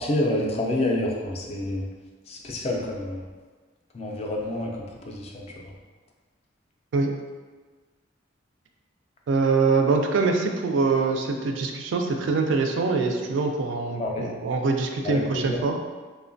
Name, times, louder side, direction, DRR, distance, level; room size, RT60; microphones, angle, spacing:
voice 1, 0.0-1.9 2.3-3.2 3.9-5.7 14.0-14.3 15.0-15.6, left 1 dB, 30° left, -1 dB, 0.3 m, -28 dB
voice 2, 9.3-15.8, right 4 dB, 75° right, 3 dB, 0.3 m, -24 dB
3.0 x 2.1 x 2.5 m, 1.4 s
head